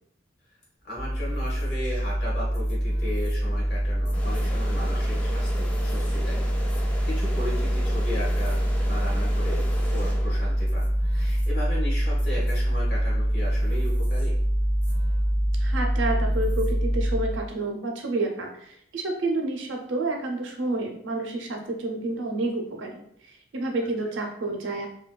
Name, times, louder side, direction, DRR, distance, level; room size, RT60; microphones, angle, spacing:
voice 1, 0.8-6.4 7.0-14.3, left 1 dB, 55° left, -5 dB, 1.1 m, -36 dB
sound 1, 0.9-17.5, equal, 85° left, 1.0 m, -25 dB
sound 2, 4.1-10.8, equal, 10° left, 0.3 m, -38 dB
voice 2, 15.6-23.0 23.5-24.9, right 2 dB, 85° right, 2 dB, 0.5 m, -29 dB
2.7 x 2.2 x 2.2 m, 0.70 s
head